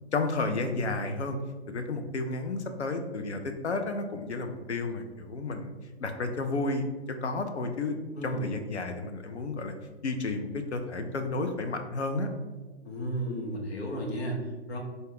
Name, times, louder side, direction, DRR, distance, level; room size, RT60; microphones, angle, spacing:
voice 1, 0.1-1.4 1.7-5.7 6.0-6.9 7.2-9.7 10.0-12.3, left 3 dB, 90° left, 6 dB, 0.6 m, -32 dB
voice 2, 8.2-8.5 12.8-14.4 14.7-14.8, right 1 dB, 75° left, -1 dB, 1.1 m, -33 dB
3.9 x 2.3 x 3.8 m, 1.3 s
figure-of-eight pair, 125°, 33 cm